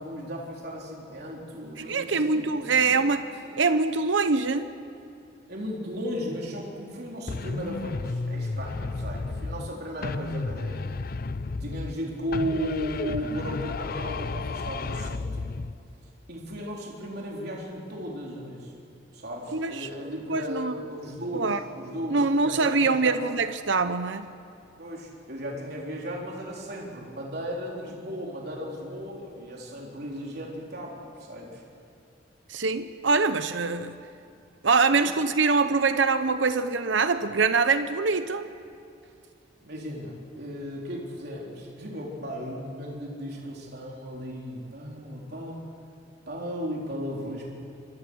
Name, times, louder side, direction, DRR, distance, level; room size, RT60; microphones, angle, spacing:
voice 1, 0.0-3.0 5.5-10.9 11.6-15.5 16.3-18.7 19.1-23.2 24.8-31.6 34.9-35.1 39.6-45.6 46.3-47.4, equal, 55° right, -2 dB, 3.9 m, -36 dB
voice 2, 1.9-3.3 3.6-4.7 19.5-19.9 20.3-20.7 21.3-21.6 22.1-24.3 32.5-34.0 34.6-38.5, right 4 dB, 75° right, 10 dB, 0.9 m, -24 dB
sound 1, 7.3-9.7 10.0-12.0 12.3-15.8, left 3 dB, 50° left, 0.6 m, -32 dB
26.5 x 23.0 x 6.4 m, 2.6 s
head